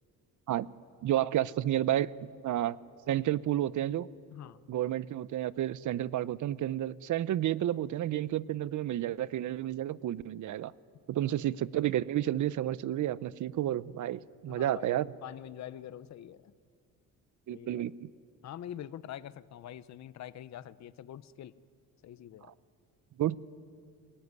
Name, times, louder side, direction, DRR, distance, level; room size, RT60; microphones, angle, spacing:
voice 1, 1.0-2.1 2.4-2.8 3.1-4.1 4.7-10.7 11.1-15.1 17.5-18.1 22.4-22.5 23.2-23.4, right 12 dB, 60° right, 19 dB, 0.7 m, -31 dB
voice 2, 14.5-16.5 17.5-17.8 18.4-21.5 22.0-22.5, left 11 dB, 50° left, 16 dB, 0.8 m, -45 dB
29.0 x 19.0 x 9.6 m, 2.2 s
cardioid pair, 115°, 35 cm